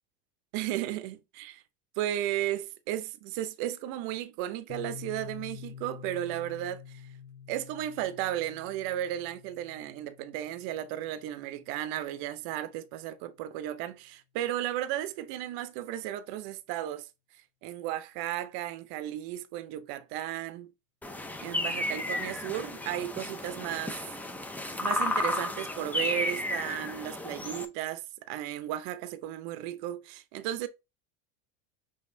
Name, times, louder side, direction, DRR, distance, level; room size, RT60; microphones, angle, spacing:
voice 1, 0.5-1.6 2.0-7.1 7.5-17.1 17.6-20.7 21.4-24.0 24.8-30.7, right 12 dB, 60° right, 0.7 m, -34 dB
Piano, 4.7-12.1, left 8 dB, 90° left, 0.9 m, -48 dB
sound 1, 21.0-27.7, left 1 dB, 5° left, 0.4 m, -33 dB
5.4 x 3.5 x 2.6 m
supercardioid pair, 120°, 43 cm